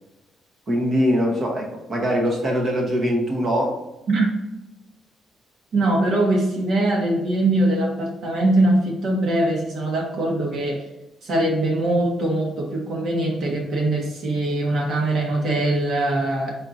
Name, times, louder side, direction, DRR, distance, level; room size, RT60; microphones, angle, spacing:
voice 1, 0.7-3.8, equal, 35° right, 0 dB, 1.0 m, -22 dB
voice 2, 5.7-10.8 11.2-16.5, right 1 dB, 55° right, -1 dB, 1.2 m, -22 dB
4.3 x 2.6 x 4.1 m, 0.95 s
cardioid pair, 145°, 0 cm